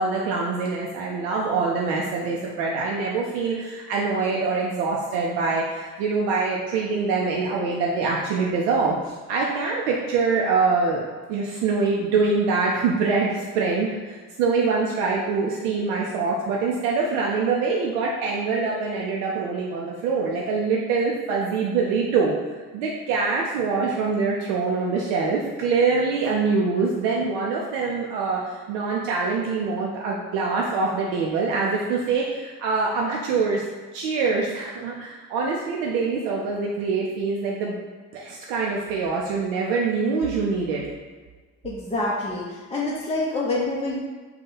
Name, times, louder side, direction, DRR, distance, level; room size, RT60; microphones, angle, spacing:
voice 1, 0.0-11.0 11.3-22.3 22.7-33.6 33.9-37.8 38.1-40.8, right 4 dB, 65° right, -3 dB, 0.6 m, -24 dB
voice 2, 41.6-44.0, left 2 dB, 15° left, -6 dB, 0.5 m, -27 dB
2.7 x 2.4 x 3.9 m, 1.4 s
figure-of-eight pair, 45°, 46 cm